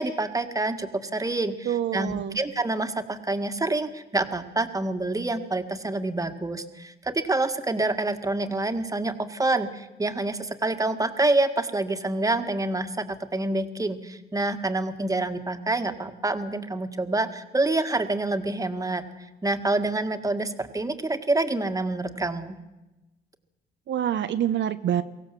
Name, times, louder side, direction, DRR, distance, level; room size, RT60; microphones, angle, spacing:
voice 1, 0.0-19.0 19.4-22.6, right 2 dB, 15° right, 7 dB, 1.9 m, -27 dB
voice 2, 1.6-2.4 23.9-25.0, right 10 dB, 65° right, 9 dB, 1.0 m, -26 dB
23.5 x 16.5 x 7.5 m, 1.0 s
cardioid pair, 90°, 20 cm